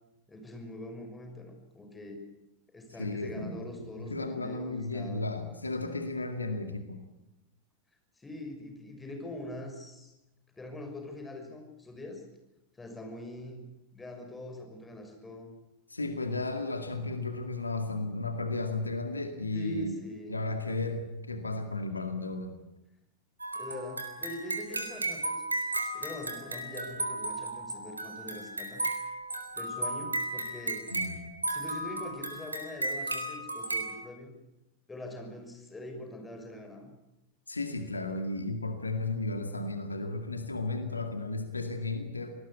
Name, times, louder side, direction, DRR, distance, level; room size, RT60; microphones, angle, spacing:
voice 1, 0.3-2.2 2.7-5.2 8.2-10.1 10.6-12.2 12.8-13.7 13.9-15.5 19.5-20.4 23.5-25.4 25.9-28.8 29.5-30.9 31.5-34.3 34.9-36.9, left 1 dB, 10° left, 4 dB, 6.0 m, -43 dB
voice 2, 3.0-7.0 15.9-20.0 20.3-22.6 30.9-31.2 37.5-42.3, left 2 dB, 80° left, 7 dB, 2.1 m, -34 dB
hilltop tea musicbox, 23.4-33.9, right 2 dB, 80° right, 3.9 m, -35 dB
26.0 x 19.0 x 8.6 m, 0.92 s
figure-of-eight pair, 90°, 0 cm